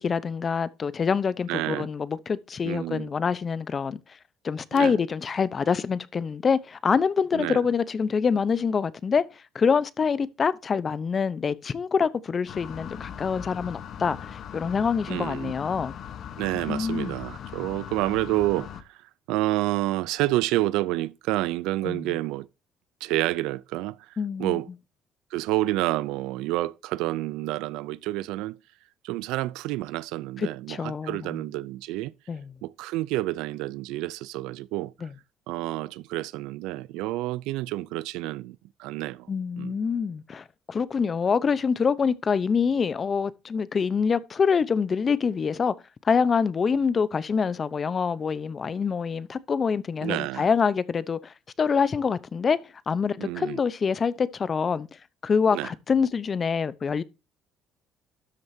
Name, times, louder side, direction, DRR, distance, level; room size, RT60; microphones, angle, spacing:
voice 1, 0.0-4.0 4.4-15.9 16.7-17.1 21.8-22.1 24.2-24.6 30.4-31.4 32.3-32.5 35.0-35.1 39.3-45.7 46.0-52.6 52.9-54.9 55.2-57.0, left 6 dB, 40° left, 0.7 m, -25 dB
voice 2, 1.5-1.9 2.6-3.1 4.7-4.9 7.3-7.6 15.1-15.5 16.4-19.0 19.3-22.5 23.0-24.7 25.3-28.6 29.0-32.1 32.6-34.9 35.5-39.3 39.6-39.8 50.0-50.5 53.2-53.6 55.5-55.7, right 17 dB, 85° right, 0.4 m, -29 dB
sound 1, 12.5-18.8, left 9 dB, 60° left, 1.1 m, -39 dB
12.5 x 7.7 x 2.7 m
cardioid pair, 90°, 0 cm